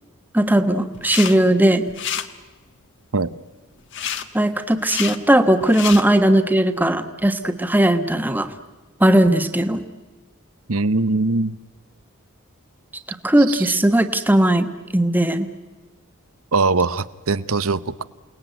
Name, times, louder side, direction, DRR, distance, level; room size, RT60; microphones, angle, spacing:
voice 1, 0.3-1.9 4.3-8.5 9.0-9.8 13.2-14.7 14.9-15.5, right 1 dB, 10° right, 7 dB, 1.3 m, -17 dB
sound 1, 0.9-1.4 1.6-2.3 3.9-4.2 4.7-5.2 5.6-6.0, left 9 dB, 55° left, 1.4 m, -28 dB
voice 2, 10.7-11.6 13.5-13.6 16.5-18.0, right 3 dB, 80° right, 15 dB, 1.0 m, -21 dB
28.5 x 19.5 x 9.2 m, 1.3 s
head